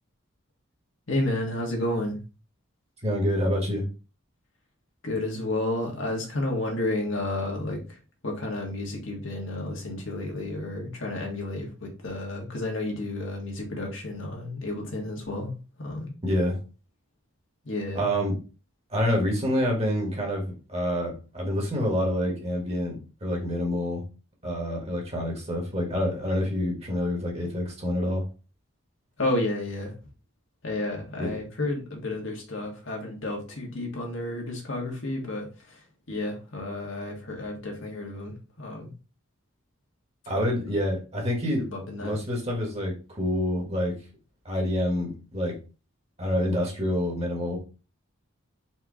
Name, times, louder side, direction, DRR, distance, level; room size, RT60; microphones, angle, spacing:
voice 1, 1.1-2.2 5.0-8.0 8.2-16.1 17.6-18.0 29.2-29.9 30.6-35.8 36.1-38.9 41.6-42.2, left 1 dB, 65° left, 0 dB, 1.5 m, -31 dB
voice 2, 3.0-3.9 16.2-16.6 17.9-18.3 18.9-24.0 24.4-28.2 31.2-31.4 40.3-41.7 42.0-44.0 44.4-45.6 46.2-47.6, equal, 30° right, -1 dB, 1.4 m, -27 dB
4.4 x 3.0 x 3.7 m, 0.33 s
head